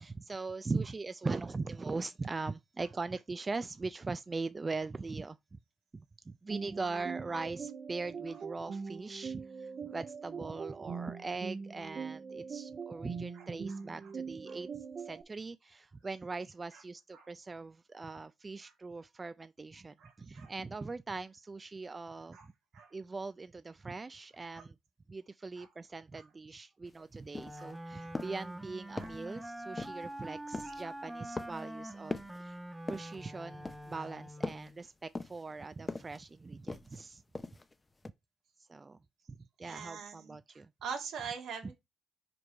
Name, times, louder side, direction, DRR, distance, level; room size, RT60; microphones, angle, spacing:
voice 1, 0.0-5.6 5.9-22.5 22.9-24.8 25.1-32.6 32.9-37.2 38.6-39.0 39.3-40.7 41.6-41.7, right 3 dB, 25° right, 0.3 m, -41 dB
sound 1, 6.5-15.2, right 5 dB, 45° right, 1.0 m, -42 dB
voice 2, 20.0-20.5 22.3-22.5 22.7-22.9 24.6-24.7 25.6-25.7 26.1-26.2 27.6-27.7 28.2-28.3 29.0-29.1 30.6-30.7 39.6-40.4 40.8-41.7, right 6 dB, 75° right, 2.0 m, -43 dB
sound 2, 26.9-27.0 27.3-27.7 28.1-28.5 29.0-29.3 29.8-30.1 30.5-30.8 31.4-31.7 32.1-32.4 32.9-33.2 33.7-34.0 34.4-34.7 35.1-35.5 35.9-36.2 36.7-37.0 37.3-37.7 38.0-38.1, left 3 dB, 20° left, 0.6 m, -40 dB
Wind instrument woodwind instrument, 27.3-34.8, right 1 dB, 10° right, 0.8 m, -45 dB
5.1 x 4.6 x 4.6 m
cardioid pair, 90°, 0 cm